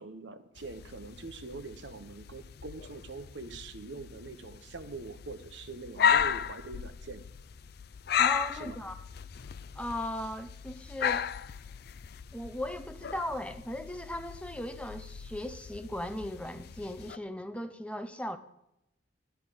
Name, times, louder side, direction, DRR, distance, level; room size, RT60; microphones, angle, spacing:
voice 1, 0.0-7.2 8.6-8.8, right 3 dB, 65° right, 9 dB, 1.1 m, -43 dB
sound 1, 0.6-17.2, left 8 dB, 55° left, 0.4 m, -35 dB
voice 2, 8.2-9.0 9.7-11.3 12.3-18.4, left 1 dB, 5° left, 9 dB, 0.6 m, -37 dB
13.0 x 12.0 x 5.2 m, 0.85 s
head